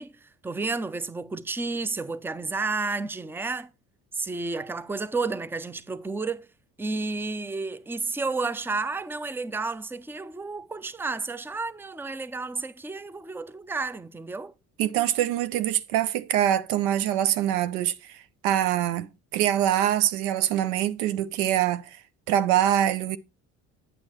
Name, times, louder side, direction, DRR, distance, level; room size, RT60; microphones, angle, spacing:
voice 1, 0.0-3.7 4.1-6.5 6.8-14.5, right 3 dB, 5° right, 0.6 m, -31 dB
voice 2, 14.8-18.2 18.4-19.1 19.3-22.0 22.3-23.2, right 11 dB, 65° right, 0.7 m, -24 dB
8.7 x 6.5 x 4.4 m
figure-of-eight pair, 50°, 41 cm